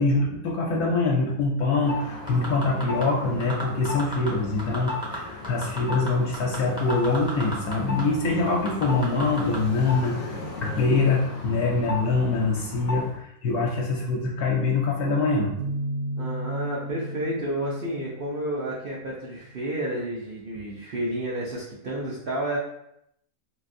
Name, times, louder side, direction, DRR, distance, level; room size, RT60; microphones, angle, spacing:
voice 1, 0.0-15.5, left 3 dB, 80° left, -2 dB, 1.0 m, -24 dB
sound 1, 1.8-13.2, left 3 dB, 50° left, 0.5 m, -36 dB
sound 2, 2.3-3.0 3.4-4.3 4.6-5.2 5.4-7.7 8.0-8.1 8.5-9.6 10.0-10.1, right 1 dB, 5° right, 0.4 m, -34 dB
sound 3, 15.6-19.3, right 1 dB, 85° right, 1.1 m, -34 dB
voice 2, 16.2-22.6, right 1 dB, 65° right, -5 dB, 0.5 m, -31 dB
3.4 x 2.6 x 2.5 m, 0.76 s
omnidirectional pair, 1.6 m